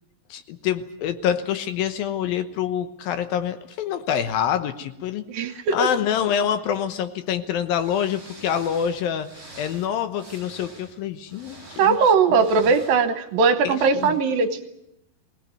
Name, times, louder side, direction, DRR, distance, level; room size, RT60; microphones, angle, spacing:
voice 1, 0.3-9.3 9.6-12.1 13.6-14.2, left 9 dB, 75° left, 10 dB, 2.7 m, -26 dB
voice 2, 5.3-5.9 11.8-14.7, right 5 dB, 75° right, 10 dB, 2.8 m, -20 dB
sound 1, 6.7-6.8 7.7-13.0 14.0-14.1, right 2 dB, 30° right, 6.2 m, -46 dB
21.5 x 18.0 x 9.3 m, 0.82 s
omnidirectional pair, 4.4 m